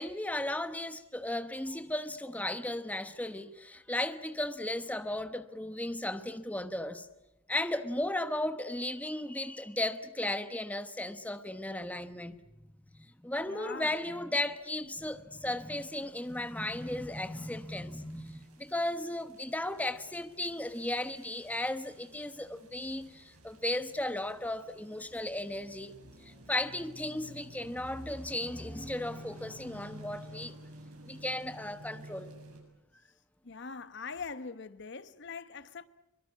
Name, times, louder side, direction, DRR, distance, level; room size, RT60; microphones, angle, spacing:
voice 1, 0.0-7.1 7.5-12.4 12.9-25.9 26.2-30.6 31.0-32.3, left 1 dB, 5° left, 1.1 m, -35 dB
voice 2, 13.5-13.9 33.4-35.9, left 5 dB, 55° left, 1.1 m, -42 dB
sound 1, 16.2-32.6, right 1 dB, 90° right, 7.2 m, -53 dB
24.5 x 22.5 x 8.3 m
head